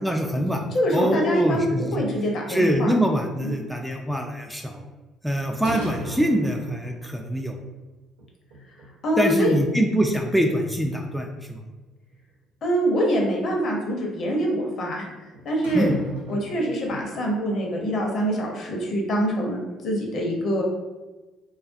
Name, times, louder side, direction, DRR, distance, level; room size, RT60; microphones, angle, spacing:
voice 1, 0.0-0.6 0.9-2.0 2.5-4.8 5.2-7.6 9.2-11.6 15.7-15.9, equal, ahead, 2 dB, 0.3 m, -24 dB
voice 2, 0.7-2.9 3.4-3.5 9.0-9.5 12.6-15.0 15.4-15.9 16.3-19.6 19.8-20.6, equal, 55° left, 0 dB, 0.7 m, -24 dB
sound 1, 2.4-3.1 5.6-7.3 7.6-7.7 8.2-9.2 9.4-9.6 10.1-10.2 10.5-11.9 13.5-13.6 15.3-17.1, right 2 dB, 90° right, 0.4 m, -36 dB
2.4 x 2.3 x 2.5 m, 1.2 s
hypercardioid pair, 55°, 0 cm